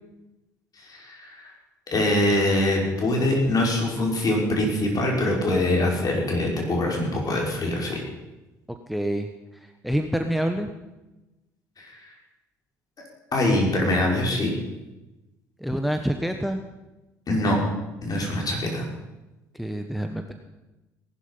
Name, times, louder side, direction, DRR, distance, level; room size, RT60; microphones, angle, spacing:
voice 1, 0.8-1.5 1.9-8.0 11.8-12.0 13.3-14.5 17.3-17.6 18.0-18.9, left 1 dB, 45° left, 0 dB, 5.8 m, -23 dB
voice 2, 8.9-9.3 9.8-10.7 15.6-16.6 19.5-20.3, equal, ahead, 6 dB, 1.4 m, -26 dB
18.5 x 11.5 x 5.8 m, 1.0 s
hypercardioid pair, 60°, 9 cm